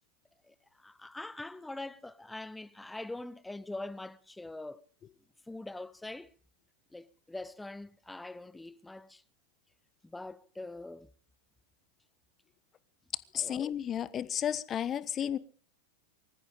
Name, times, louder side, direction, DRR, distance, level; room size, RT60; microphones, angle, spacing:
voice 1, 0.5-4.8 5.5-6.3 6.9-9.2 10.0-11.1 13.4-13.6, left 2 dB, 5° left, 0.7 m, -43 dB
voice 2, 13.3-15.4, left 9 dB, 25° left, 1.1 m, -32 dB
24.5 x 14.5 x 3.8 m
figure-of-eight pair, 90°, 0 cm